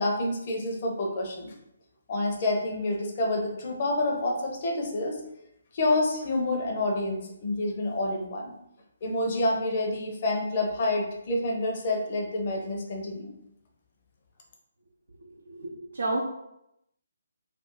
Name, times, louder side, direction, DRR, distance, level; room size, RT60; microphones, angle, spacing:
voice 1, 0.0-1.5 2.1-5.2 5.7-8.5 9.0-13.3, left 2 dB, 40° left, 1 dB, 0.7 m, -28 dB
voice 2, 15.2-16.2, right 2 dB, 75° right, -3 dB, 0.6 m, -32 dB
2.6 x 2.3 x 3.7 m, 0.81 s
figure-of-eight pair, 140°, 0 cm